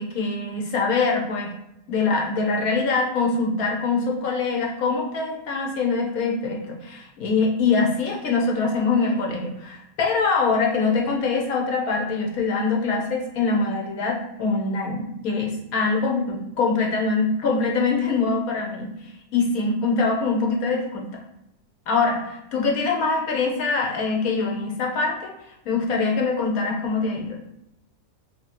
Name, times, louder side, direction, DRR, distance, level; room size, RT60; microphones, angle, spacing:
voice 1, 0.0-1.5 1.9-18.9 19.3-21.1 21.9-25.3 25.7-27.4, left 4 dB, 90° left, 0 dB, 1.3 m, -23 dB
2.8 x 2.7 x 4.3 m, 0.85 s
omnidirectional pair, 1.5 m